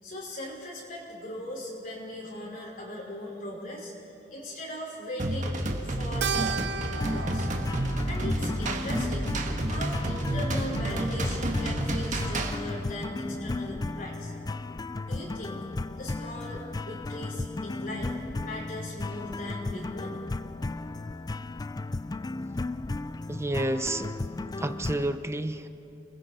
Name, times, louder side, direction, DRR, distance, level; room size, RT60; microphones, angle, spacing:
voice 1, 0.0-3.9 4.3-6.6 6.9-7.5 8.1-9.3 9.7-14.3 15.0-15.6 16.0-18.1 18.4-20.2, left 1 dB, 50° left, -3 dB, 4.9 m, -39 dB
sound 1, 5.2-12.6, right 1 dB, 45° right, 1.6 m, -30 dB
Keyboard (musical), 6.2-10.8, right 6 dB, 70° right, 0.6 m, -37 dB
sound 2, 7.0-25.2, left 2 dB, 20° left, 0.4 m, -35 dB
voice 2, 23.3-24.1 24.6-25.7, right 1 dB, 15° right, 10 dB, 0.7 m, -30 dB
29.5 x 21.5 x 4.3 m, 2.8 s
head